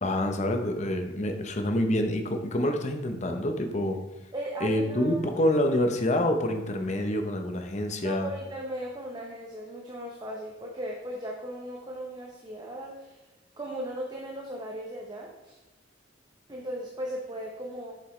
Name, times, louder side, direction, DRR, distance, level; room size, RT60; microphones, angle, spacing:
voice 1, 0.0-4.0 4.6-8.3, left 1 dB, 35° left, 5 dB, 0.8 m, -27 dB
voice 2, 4.3-5.3 8.0-13.2 13.6-15.6 16.5-18.0, right 1 dB, 20° right, -1 dB, 0.8 m, -37 dB
7.6 x 7.4 x 3.2 m, 1.0 s
head